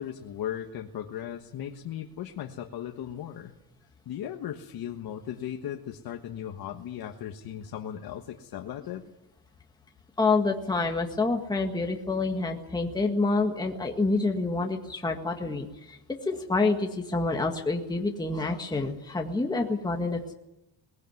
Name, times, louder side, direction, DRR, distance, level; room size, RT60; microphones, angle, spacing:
voice 1, 0.0-3.5 4.0-9.0, left 10 dB, 55° left, 3 dB, 1.5 m, -37 dB
voice 2, 10.2-16.0 16.2-20.3, left 3 dB, 10° left, 2 dB, 1.8 m, -27 dB
20.5 x 16.5 x 9.6 m, 0.94 s
cardioid pair, 145°, 43 cm